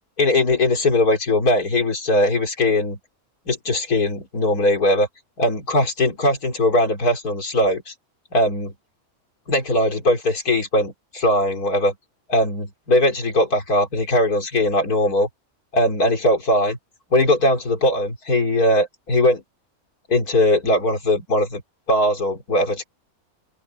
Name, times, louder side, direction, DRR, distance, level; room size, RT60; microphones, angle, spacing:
voice 1, 0.2-3.0 3.5-5.1 5.4-7.9 8.3-8.7 9.5-11.9 12.3-15.3 15.7-16.8 17.1-19.4 20.1-21.6 21.9-22.8, left 1 dB, 85° left, 4.0 m, -20 dB
open air
omnidirectional pair, 1.6 m